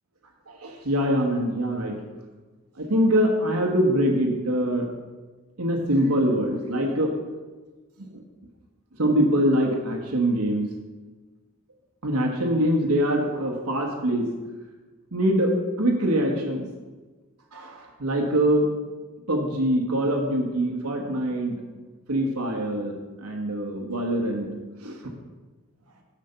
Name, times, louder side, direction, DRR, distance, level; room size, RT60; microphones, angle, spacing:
voice 1, 0.5-1.9 2.8-4.9 5.6-7.1 9.0-10.6 12.0-14.3 15.1-16.7 17.5-18.7 19.3-21.5 22.1-22.9 23.2-24.5 24.8-24.9, equal, 75° right, 1 dB, 1.3 m, -23 dB
6.7 x 6.6 x 5.6 m, 1.3 s
head